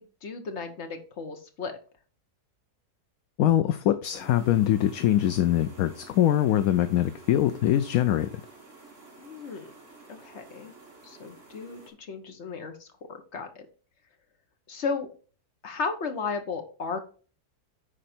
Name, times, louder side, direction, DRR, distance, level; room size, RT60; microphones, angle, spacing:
voice 1, 0.0-1.7 9.2-9.7 10.1-10.7 11.0-13.7 14.7-15.1 15.6-17.0, left 4 dB, 45° left, 6 dB, 1.4 m, -35 dB
voice 2, 3.4-8.3, left 12 dB, 70° left, 11 dB, 0.9 m, -23 dB
sound 1, 4.1-11.9, right 3 dB, 50° right, 2.8 m, -50 dB
10.0 x 4.3 x 4.3 m, 0.40 s
omnidirectional pair, 1.7 m